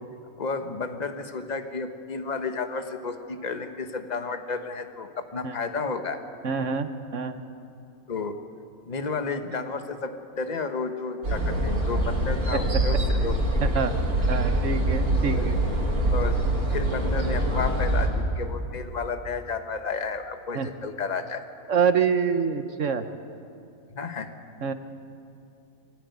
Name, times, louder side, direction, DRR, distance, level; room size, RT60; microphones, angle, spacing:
voice 1, 0.4-6.2 8.1-8.4 8.9-13.4 15.2-15.5 16.1-16.4 16.7-21.4 23.9-24.4, left 4 dB, 30° left, 7 dB, 1.2 m, -32 dB
voice 2, 6.4-7.4 13.6-13.9 14.3-15.6 20.5-20.7 21.7-23.1 24.6-24.7, right 6 dB, 65° right, 9 dB, 1.3 m, -26 dB
sound 1, 11.2-18.1, right 1 dB, 85° right, 4.2 m, -24 dB
22.5 x 15.0 x 9.5 m, 2.6 s
omnidirectional pair, 1.5 m